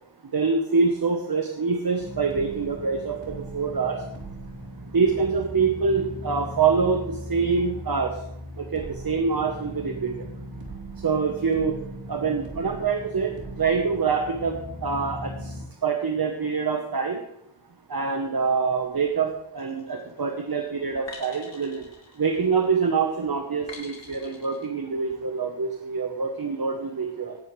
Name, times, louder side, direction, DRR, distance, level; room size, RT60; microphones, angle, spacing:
voice 1, 0.3-4.0 4.9-8.1 8.6-10.1 11.0-11.7 12.1-13.3 13.6-14.5 14.8-15.3 15.8-17.2 17.9-19.3 19.5-21.8 22.2-27.3, right 5 dB, 50° right, 3 dB, 1.2 m, -25 dB
sound 1, 2.0-15.6, equal, 65° right, 3.3 m, -38 dB
sound 2, 19.6-20.0 21.1-22.7 23.7-24.7, left 3 dB, 65° left, 2.6 m, -44 dB
18.0 x 9.3 x 3.3 m, 0.78 s
wide cardioid pair, 120°, 47 cm